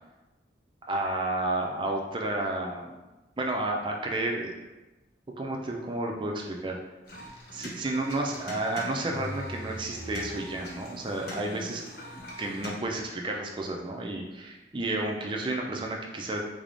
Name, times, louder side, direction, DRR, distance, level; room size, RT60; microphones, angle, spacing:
voice 1, 0.9-2.9 3.4-4.5 5.4-6.8 7.5-11.8 12.4-16.4, right 2 dB, 25° right, 0 dB, 0.4 m, -31 dB
sound 1, 7.1-12.7, equal, 55° left, 0.7 m, -41 dB
3.5 x 3.3 x 2.6 m, 1.1 s
head